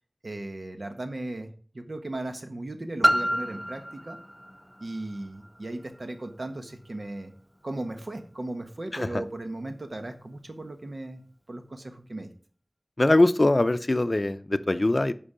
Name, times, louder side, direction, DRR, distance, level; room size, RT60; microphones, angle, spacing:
voice 1, 0.2-4.2 4.8-7.3 7.6-11.2 11.5-12.3, right 2 dB, 70° right, 6 dB, 1.3 m, -37 dB
Piano, 3.0-8.5 9.2-9.3, equal, ahead, 0.4 m, -31 dB
voice 2, 8.9-9.2 13.0-15.1, left 2 dB, 50° left, 12 dB, 0.6 m, -22 dB
10.0 x 5.4 x 5.1 m, 0.44 s
wide cardioid pair, 55°, 0 cm